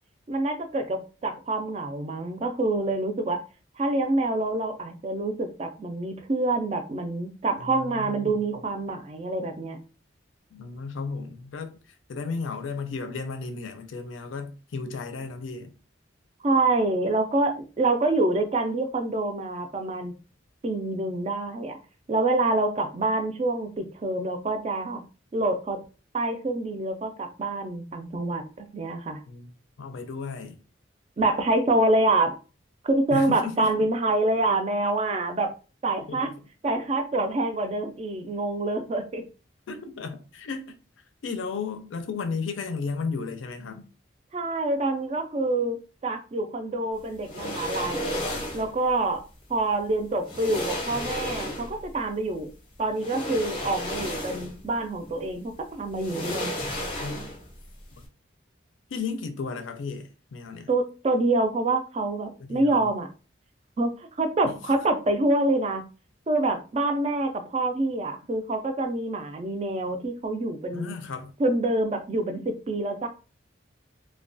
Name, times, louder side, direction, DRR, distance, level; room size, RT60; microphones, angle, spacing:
voice 1, 0.3-3.4 3.8-9.8 16.4-20.1 20.6-21.8 22.1-25.0 25.3-25.8 26.1-29.2 31.2-32.3 32.8-35.5 35.8-36.3 36.6-39.2 44.3-45.8 46.0-48.2 48.5-49.2 49.5-52.5 52.8-56.6 60.7-63.1 63.8-65.8 66.3-70.9 71.4-73.1, right 2 dB, 35° right, 0.3 m, -26 dB
voice 2, 7.6-8.1 10.5-11.8 12.1-15.7 29.3-29.5 29.8-30.6 33.1-33.9 36.1-36.2 39.7-40.8 41.2-43.9 57.0-57.2 58.0-58.1 58.9-60.7 62.5-62.9 64.4-64.7 70.7-71.3, left 4 dB, 80° left, 0.4 m, -34 dB
sound 1, 47.2-48.7 49.8-49.9 50.3-51.9 52.9-54.7 55.0-55.1 55.9-57.6 57.8-58.0, left 1 dB, 30° left, 0.6 m, -33 dB
2.3 x 2.2 x 2.5 m
head